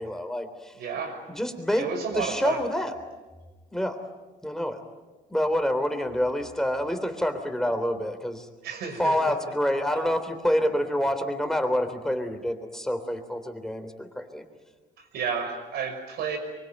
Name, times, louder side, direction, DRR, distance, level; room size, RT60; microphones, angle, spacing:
voice 1, 0.0-0.7 1.3-1.9 2.1-2.9 3.7-4.0 4.4-4.8 5.3-8.5 9.0-14.4, equal, 5° left, 6 dB, 3.4 m, -27 dB
voice 2, 0.8-1.2 1.7-2.6 8.6-9.3 15.0-16.4, right 6 dB, 80° right, 7 dB, 5.8 m, -31 dB
24.5 x 24.0 x 9.2 m, 1.2 s
cardioid pair, 120°, 16 cm